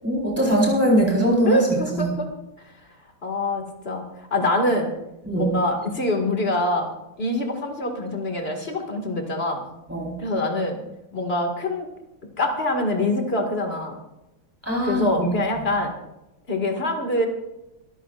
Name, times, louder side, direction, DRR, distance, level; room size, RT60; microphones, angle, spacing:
voice 1, 0.0-1.6 1.9-2.1 5.2-5.5 9.9-10.1 14.6-15.3, equal, 5° right, -3 dB, 4.1 m, -21 dB
voice 2, 1.4-2.3 3.2-4.0 4.3-4.9 5.3-6.9 7.2-9.6 10.2-10.8 11.1-11.9 12.4-14.0 14.8-15.9 16.5-17.3, left 1 dB, 30° left, 3 dB, 2.2 m, -24 dB
25.5 x 14.0 x 2.5 m, 0.97 s
omnidirectional pair, 2.1 m